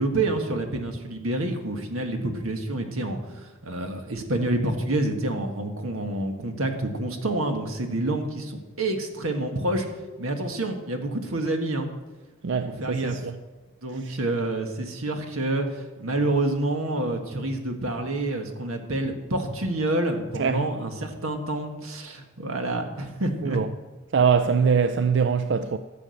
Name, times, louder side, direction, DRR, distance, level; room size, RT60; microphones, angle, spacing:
voice 1, 0.0-9.9 10.2-11.9 12.7-13.2 13.8-23.6, right 2 dB, 85° right, 1.7 m, -28 dB
voice 2, 12.4-13.4 14.0-14.1 20.4-20.7 23.4-23.7 24.1-25.8, right 6 dB, 55° right, 0.4 m, -23 dB
13.5 x 7.7 x 6.5 m
head